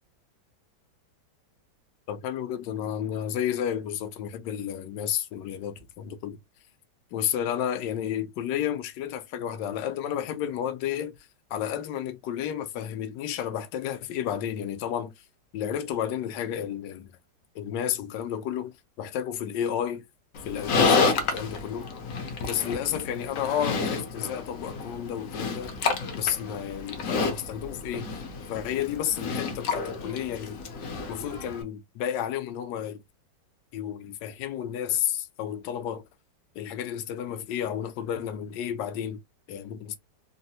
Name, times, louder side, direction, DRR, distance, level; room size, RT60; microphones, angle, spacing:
voice 1, 2.1-6.4 7.1-11.2 11.5-15.1 15.5-17.1 17.5-20.0 20.4-21.9 22.4-25.8 26.2-28.1 28.5-30.6 31.1-33.0 33.7-36.0 36.5-39.2 39.5-40.0, left 10 dB, 80° left, 1.3 m, -31 dB
Livestock farm animals working animals, 20.3-31.6, left 4 dB, 60° left, 0.9 m, -30 dB
3.7 x 2.0 x 2.7 m
omnidirectional pair, 1.9 m